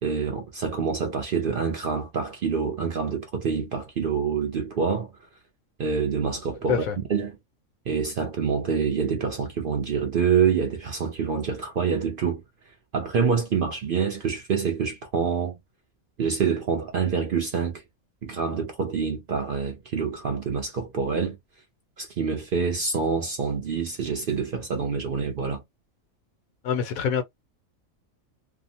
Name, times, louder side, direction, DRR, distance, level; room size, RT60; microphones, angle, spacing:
voice 1, 0.0-5.1 5.8-6.8 7.1-7.3 7.9-12.4 12.9-15.6 16.2-17.8 18.2-21.4 22.0-25.6, right 6 dB, 60° right, 0.6 m, -26 dB
voice 2, 26.6-27.2, left 7 dB, 85° left, 1.2 m, -25 dB
2.8 x 2.0 x 2.6 m
omnidirectional pair, 1.4 m